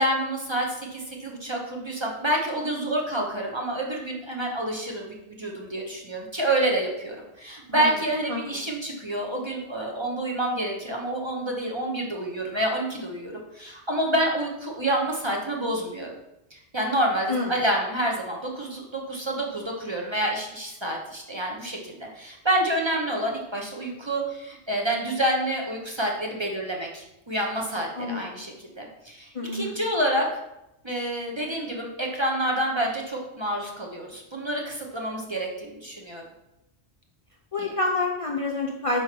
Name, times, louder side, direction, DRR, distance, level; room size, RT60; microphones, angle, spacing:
voice 1, 0.0-16.1 16.5-30.3 30.8-36.2 37.6-37.7, right 1 dB, 25° right, 0 dB, 0.9 m, -28 dB
voice 2, 8.3-8.6 17.3-17.5 27.9-28.4 29.3-29.8 37.5-39.0, left 2 dB, 40° left, -2 dB, 0.6 m, -28 dB
5.4 x 4.4 x 4.5 m, 0.89 s
omnidirectional pair, 1.1 m